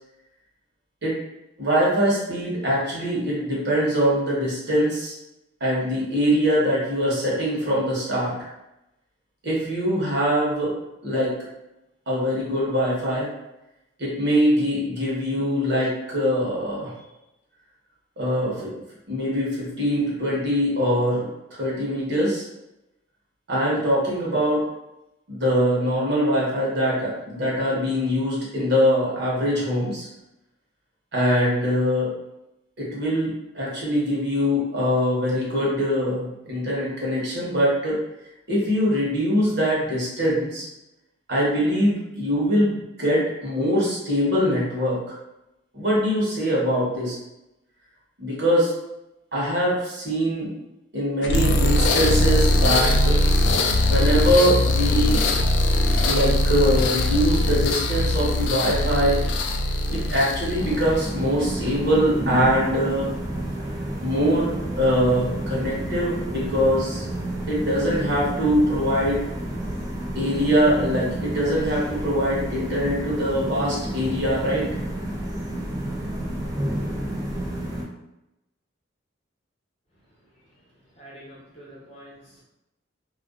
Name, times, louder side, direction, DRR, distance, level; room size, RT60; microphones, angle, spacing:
voice 1, 1.6-5.1 5.6-8.3 9.4-10.7 11.0-11.4 12.1-13.3 14.0-16.9 18.2-18.7 19.1-22.5 23.5-24.6 25.3-30.1 31.1-32.1 32.8-38.0 38.5-40.7 41.3-45.1 45.7-47.2 48.2-48.7 49.3-50.5 50.9-53.2 53.9-55.2 56.1-59.2 59.9-63.1 64.0-67.0 67.5-69.3 70.1-74.7, equal, 60° right, -6 dB, 1.0 m, -23 dB
sound 1, 51.2-61.2, left 1 dB, 65° left, 0.3 m, -21 dB
sound 2, 60.6-77.8, right 1 dB, 20° right, 0.4 m, -30 dB
voice 2, 81.0-82.4, equal, 35° left, -5 dB, 0.8 m, -46 dB
2.4 x 2.2 x 2.3 m, 0.92 s
head